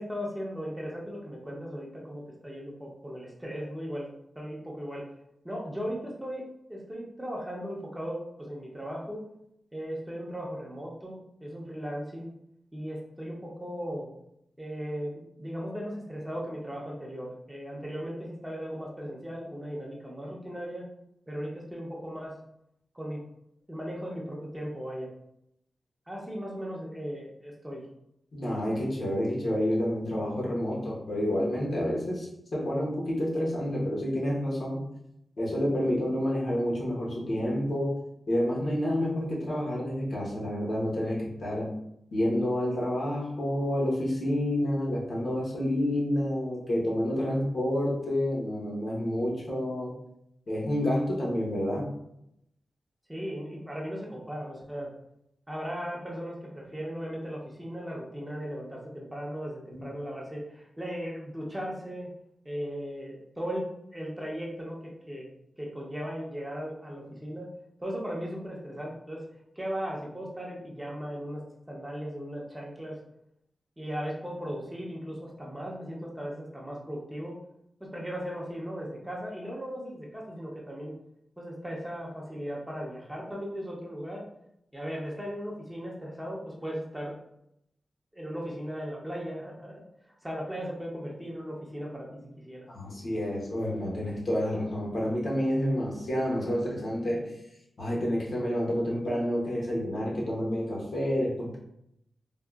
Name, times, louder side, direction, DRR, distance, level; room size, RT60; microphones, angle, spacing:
voice 1, 0.0-4.1 4.4-5.1 5.4-6.4 6.7-9.2 9.7-12.3 12.7-14.1 14.6-20.9 21.3-22.3 22.9-23.2 23.7-25.1 26.1-27.9 53.1-54.9 55.5-62.1 62.4-65.3 65.6-67.5 67.8-69.2 69.6-71.4 71.7-73.0 73.8-77.4 77.8-80.9 81.4-84.2 84.7-87.1 88.1-92.7, equal, 10° right, -3 dB, 0.6 m, -37 dB
voice 2, 28.3-34.8 35.4-38.0 38.3-41.7 42.1-49.9 50.5-51.9 59.7-59.9 92.7-97.3 97.8-101.6, equal, 60° left, -4 dB, 1.0 m, -29 dB
3.6 x 2.3 x 2.3 m, 0.78 s
wide cardioid pair, 110°, 0 cm